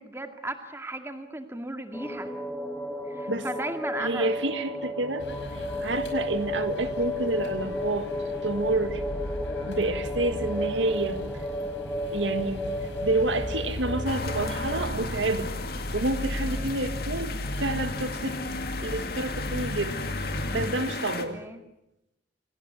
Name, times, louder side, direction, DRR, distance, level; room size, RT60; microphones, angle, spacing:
voice 1, 0.0-2.3 3.1-4.3 16.4-16.7 21.3-21.6, right 1 dB, 15° right, 6 dB, 2.1 m, -36 dB
sound 1, 1.9-14.8, left 1 dB, 10° left, 1.2 m, -33 dB
voice 2, 4.0-8.1 8.4-9.0 9.6-11.2 12.1-12.7 13.0-15.5 15.9-17.3 17.6-18.4 18.8-20.1 20.5-21.4, right 2 dB, 85° right, 9 dB, 1.9 m, -29 dB
sound 2, 5.2-20.7, equal, 70° left, 5.1 m, -36 dB
sound 3, 14.1-21.3, left 4 dB, 55° left, 2.2 m, -36 dB
27.0 x 18.5 x 9.5 m, 0.87 s
head